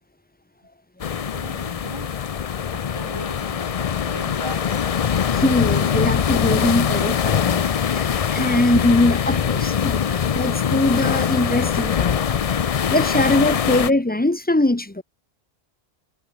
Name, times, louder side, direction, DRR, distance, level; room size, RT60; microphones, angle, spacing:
sound 1, 1.0-13.9, left 8 dB, 45° left, 0.5 m, -22 dB
voice 1, 1.0-2.1 2.7-4.9, right 1 dB, 20° right, 3.7 m, -39 dB
voice 2, 5.3-12.4 12.9-15.0, left 1 dB, 10° left, 0.7 m, -22 dB
omnidirectional pair, 1.1 m